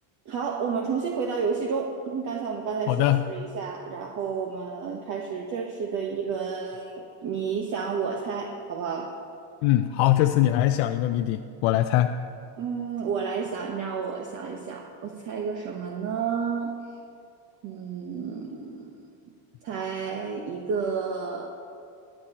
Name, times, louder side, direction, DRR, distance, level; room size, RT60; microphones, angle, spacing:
voice 1, 0.3-9.1 12.6-16.7 17.6-18.9 19.6-21.5, right 6 dB, 45° right, 1 dB, 1.0 m, -31 dB
voice 2, 2.9-3.2 9.6-12.1, left 13 dB, 80° left, 6 dB, 0.6 m, -22 dB
24.0 x 9.1 x 2.9 m, 2.4 s
cardioid pair, 145°, 42 cm